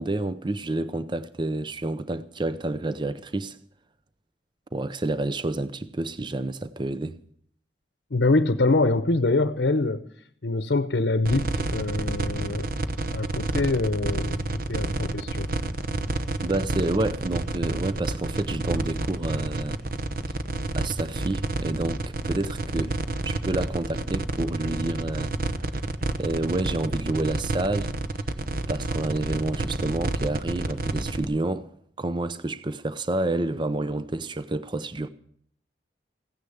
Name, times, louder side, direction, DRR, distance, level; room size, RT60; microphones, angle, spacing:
voice 1, 0.0-3.6 4.7-7.2 16.4-19.8 20.7-23.0 23.2-25.4 26.2-27.9 28.7-31.7 32.0-35.1, right 2 dB, 25° right, 0.6 m, -29 dB
voice 2, 8.1-10.0 10.4-12.7 13.1-15.5, left 2 dB, 75° left, 0.8 m, -24 dB
sound 1, 11.2-31.2, right 2 dB, 55° right, 0.9 m, -29 dB
15.5 x 10.0 x 7.1 m
head